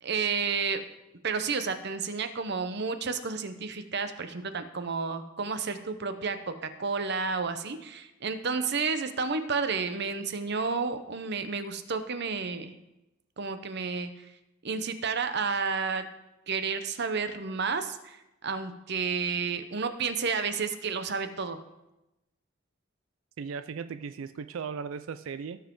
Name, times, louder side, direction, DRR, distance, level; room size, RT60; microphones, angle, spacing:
voice 1, 0.0-0.8 1.2-12.7 13.4-14.1 14.6-16.0 16.5-18.2 18.4-21.6, right 5 dB, 60° right, 9 dB, 0.8 m, -31 dB
voice 2, 23.4-25.6, right 6 dB, 80° right, 12 dB, 0.4 m, -37 dB
17.0 x 5.8 x 3.8 m, 0.93 s
head